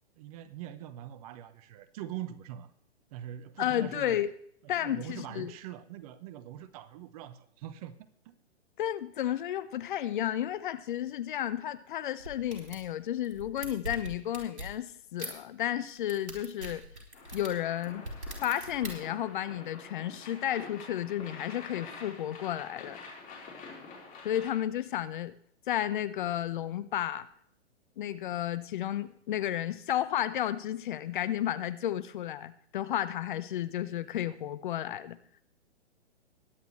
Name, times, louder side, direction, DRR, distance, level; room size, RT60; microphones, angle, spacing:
voice 1, 0.2-2.7 3.1-4.2 4.8-8.0 8.2-8.3, right 11 dB, 35° right, 0.9 m, -43 dB
voice 2, 3.6-4.3 4.7-5.5 8.8-16.8 17.3-18.1 18.4-23.0 24.2-25.3 25.7-27.3 28.0-35.2, left 11 dB, 45° left, 0.8 m, -32 dB
sound 1, 12.2-12.8 13.2-14.7 15.2-15.3 15.9-18.9, right 1 dB, 85° right, 4.2 m, -41 dB
sound 2, 17.1-24.5, left 4 dB, 25° left, 4.2 m, -47 dB
21.0 x 9.2 x 3.2 m
figure-of-eight pair, 120°, 34 cm